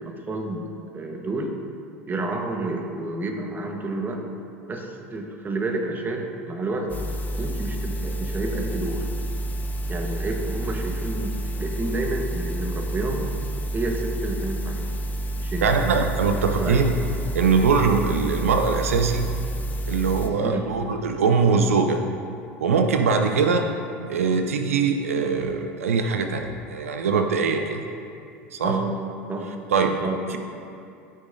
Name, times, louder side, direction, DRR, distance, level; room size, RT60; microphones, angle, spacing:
voice 1, 0.0-1.5 2.1-4.2 4.7-6.9 7.4-9.1 9.9-13.3 13.7-14.9 15.4-15.7 16.6-16.8 20.4-20.6 28.6-29.0 29.3-29.5 30.0-30.2, right 2 dB, 25° right, 3 dB, 1.2 m, -30 dB
sound 1, 6.9-20.3, right 1 dB, 20° left, 0.9 m, -29 dB
voice 2, 15.6-16.9 17.3-19.3 19.9-22.0 22.6-23.7 24.1-27.8 28.5-28.8 29.7-30.0 30.3-30.4, right 5 dB, 80° right, 5 dB, 0.5 m, -22 dB
13.0 x 6.3 x 2.6 m, 2.6 s
hypercardioid pair, 75°, 7 cm